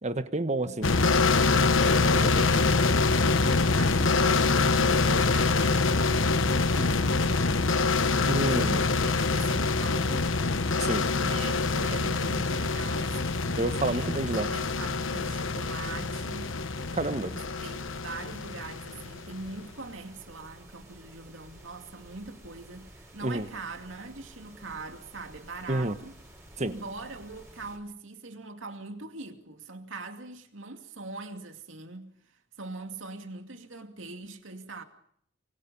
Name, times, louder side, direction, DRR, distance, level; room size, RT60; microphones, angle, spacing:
voice 1, 0.0-0.8 8.3-8.9 10.8-11.0 13.6-14.5 16.9-17.3 23.2-23.5 25.7-25.9 26.6-26.7, right 2 dB, 35° right, 1.4 m, -29 dB
voice 2, 0.6-1.2 1.8-5.9 6.5-7.8 8.1-10.3 11.1-16.6 17.3-26.2 26.6-32.2 32.6-34.8, right 3 dB, 75° right, 2.5 m, -42 dB
sound 1, 0.8-19.5, left 3 dB, 80° left, 1.1 m, -25 dB
sound 2, 11.0-27.8, right 1 dB, 15° right, 5.2 m, -52 dB
25.5 x 24.5 x 5.5 m
head